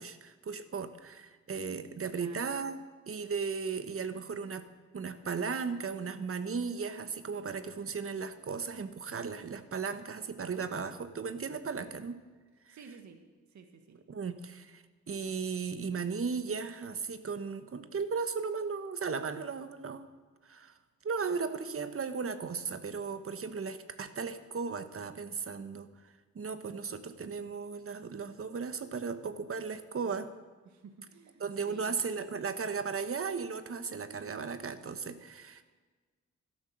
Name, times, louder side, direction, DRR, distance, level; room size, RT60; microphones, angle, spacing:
voice 1, 0.0-2.8 3.1-4.7 4.9-12.2 12.7-12.8 14.1-20.1 20.4-20.7 21.0-25.9 26.3-30.3 31.4-35.6, right 5 dB, 50° right, 11 dB, 1.2 m, -36 dB
voice 2, 2.1-2.6 12.7-14.0 30.6-32.0, right 5 dB, 70° right, 6 dB, 1.6 m, -53 dB
13.0 x 12.0 x 6.4 m, 1.4 s
cardioid pair, 70°, 29 cm